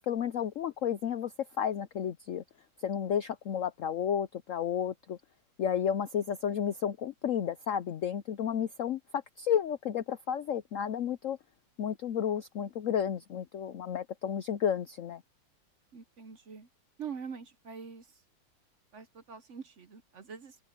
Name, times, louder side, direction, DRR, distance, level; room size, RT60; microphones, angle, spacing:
voice 1, 0.0-1.3 1.6-2.4 2.8-5.2 5.6-11.4 11.8-15.2, left 8 dB, 85° left, 0.6 m, -32 dB
voice 2, 15.9-16.7 17.0-18.2 18.9-20.6, right 6 dB, 55° right, 0.9 m, -44 dB
omnidirectional pair, 2.1 m